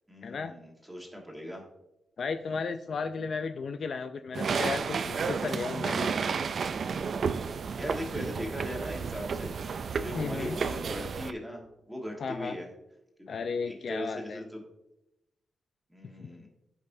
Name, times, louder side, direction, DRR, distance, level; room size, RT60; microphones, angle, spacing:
voice 1, 0.1-1.6 7.4-12.7 13.2-14.6 15.9-16.5, equal, 5° right, 0 dB, 1.5 m, -39 dB
voice 2, 2.2-6.1 10.1-10.6 12.2-12.6 13.3-14.4 16.2-16.3, left 5 dB, 45° left, 8 dB, 0.3 m, -34 dB
sound 1, 4.3-11.3, right 5 dB, 45° right, 0.3 m, -32 dB
14.5 x 5.4 x 2.7 m, 0.89 s
wide cardioid pair, 180°, 0 cm